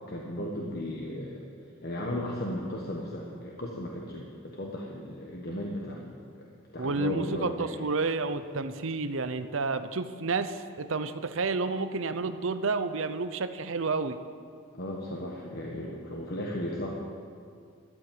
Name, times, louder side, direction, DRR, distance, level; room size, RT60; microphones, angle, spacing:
voice 1, 0.1-1.4 1.8-6.5 6.7-7.7 14.7-16.9, left 1 dB, 45° left, -2 dB, 1.3 m, -35 dB
voice 2, 6.8-14.2, right 3 dB, 60° right, 11 dB, 0.7 m, -30 dB
13.0 x 8.6 x 9.2 m, 2.3 s
head